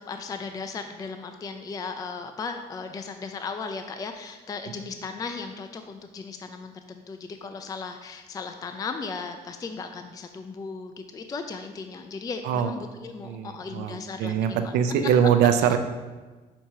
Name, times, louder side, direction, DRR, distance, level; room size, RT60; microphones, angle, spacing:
voice 1, 0.1-14.8, left 4 dB, 20° left, 7 dB, 0.4 m, -36 dB
voice 2, 13.2-15.8, right 8 dB, 90° right, 8 dB, 0.5 m, -23 dB
6.2 x 2.9 x 5.5 m, 1.3 s
cardioid pair, 110°, 17 cm